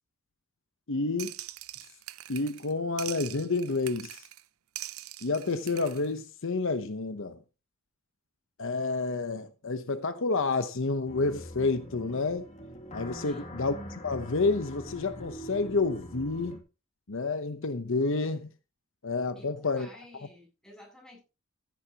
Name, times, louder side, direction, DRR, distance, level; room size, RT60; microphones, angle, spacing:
voice 1, 0.9-1.4 2.3-4.2 5.2-7.4 8.6-12.5 12.9-16.6 17.1-18.5 19.0-19.9, left 3 dB, 65° left, 0.9 m, -29 dB
sound 1, 1.2-2.7 3.0-4.4 4.8-6.1, right 14 dB, 90° right, 0.7 m, -42 dB
sound 2, 11.1-16.6, equal, 35° left, 2.6 m, -43 dB
voice 2, 13.2-13.6 19.3-21.2, left 1 dB, 5° left, 7.7 m, -52 dB
14.5 x 10.5 x 2.9 m
head